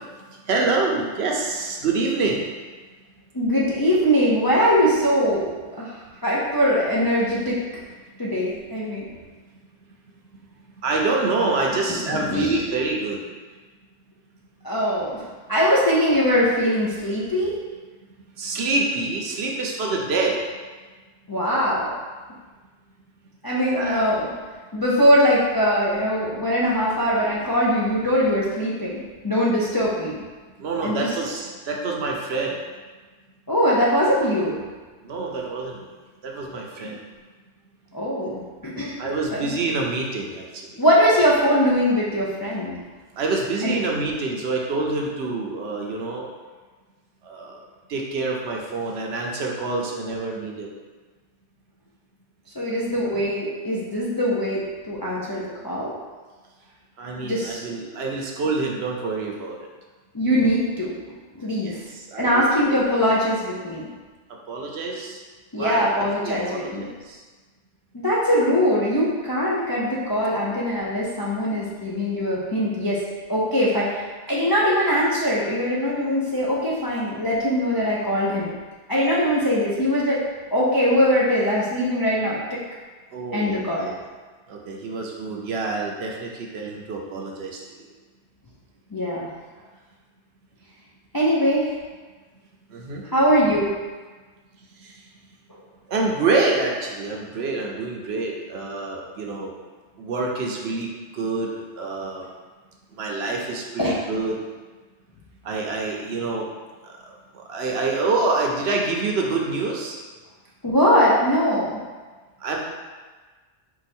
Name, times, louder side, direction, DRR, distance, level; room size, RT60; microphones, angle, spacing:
voice 1, 0.3-2.4 10.8-13.2 18.4-20.4 23.7-24.0 30.6-32.6 35.0-35.9 36.2-37.0 39.0-40.7 43.2-46.3 47.2-47.6 47.9-50.7 57.0-59.6 61.6-62.7 64.5-65.2 65.6-67.2 83.1-84.0 84.5-87.6 92.7-93.0 94.8-94.9 95.9-99.5 100.0-100.9 101.1-101.5 101.8-102.2 103.0-104.4 105.4-106.5 107.3-110.0 112.4-112.6, right 3 dB, 65° right, 0 dB, 0.9 m, -26 dB
voice 2, 3.3-5.9 6.2-7.6 8.2-9.1 11.9-12.6 14.6-15.2 15.5-17.6 21.3-21.9 23.4-24.3 24.7-30.2 30.8-31.1 33.5-34.6 36.8-36.9 37.9-39.0 39.3-39.5 40.8-42.8 43.6-43.8 52.6-55.9 57.2-57.6 60.1-60.9 61.4-61.8 62.2-63.9 65.5-66.9 67.9-73.0 73.3-78.5 78.9-80.2 80.5-82.4 83.3-83.9 88.9-89.3 91.1-91.8 93.1-93.7 103.8-104.0 110.6-111.8, equal, 35° left, -6 dB, 0.3 m, -21 dB
4.6 x 2.4 x 4.2 m, 1.4 s
omnidirectional pair, 1.2 m